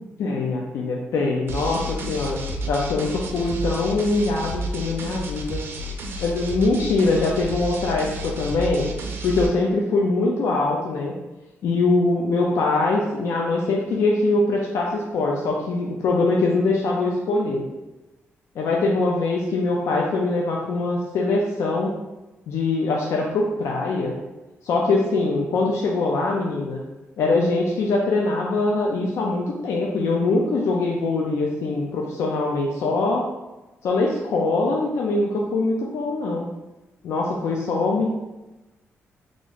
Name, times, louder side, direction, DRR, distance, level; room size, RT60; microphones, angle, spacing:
voice 1, 0.0-2.4 2.7-5.6 6.2-8.9 9.2-11.1 11.6-17.6 18.6-21.9 22.5-24.2 24.6-26.8 27.2-33.3 33.8-36.5 37.0-38.1, left 3 dB, 85° left, -1 dB, 0.4 m, -23 dB
sound 1, 1.5-9.5, equal, 55° right, 0.4 m, -31 dB
3.0 x 2.5 x 3.9 m, 1.0 s
wide cardioid pair, 175°, 5 cm